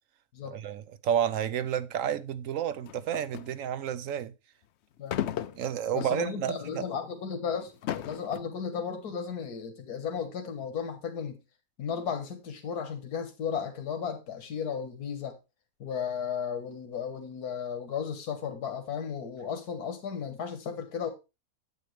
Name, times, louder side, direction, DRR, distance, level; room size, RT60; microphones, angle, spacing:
voice 1, 0.5-4.3 5.6-6.8, right 9 dB, 65° right, 1.0 m, -31 dB
sound 1, 2.8-3.6 5.1-6.3 6.8-6.9 7.6-8.4, left 11 dB, 65° left, 0.7 m, -35 dB
voice 2, 5.0-5.5 5.9-11.4 11.8-15.4 15.8-21.1, left 7 dB, 85° left, 1.8 m, -34 dB
8.4 x 8.4 x 3.3 m
omnidirectional pair, 1.6 m